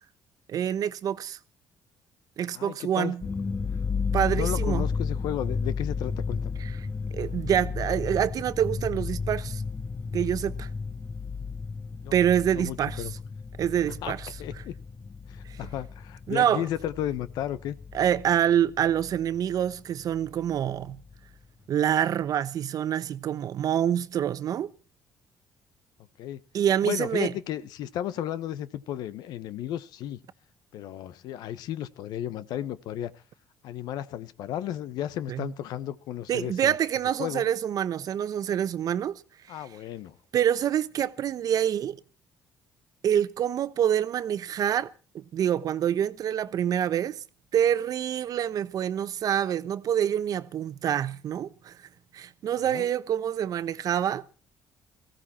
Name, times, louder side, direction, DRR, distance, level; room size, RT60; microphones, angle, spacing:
voice 1, 0.5-1.4 2.4-3.2 4.1-4.9 7.1-9.6 10.1-10.7 12.1-13.0 13.6-14.2 15.5-15.6 16.3-16.6 17.9-21.0 21.7-24.7 26.5-27.3 35.3-35.5 36.3-39.2 40.3-42.0 43.0-44.9 45.1-47.2 47.5-51.8 52.1-54.2, right 10 dB, 60° right, 1.0 m, -26 dB
voice 2, 2.5-3.1 4.3-6.6 12.0-12.2 12.5-13.1 14.0-14.7 15.3-17.8 26.2-26.4 26.8-30.2 30.7-33.2 33.6-36.7 37.2-37.4 39.5-40.2 52.7-52.9, left 11 dB, 75° left, 1.0 m, -34 dB
sound 1, 3.2-18.3 18.6-19.7 20.0-20.1 20.5-21.1, left 5 dB, 30° left, 1.2 m, -33 dB
18.0 x 15.5 x 4.3 m
supercardioid pair, 75°, 7 cm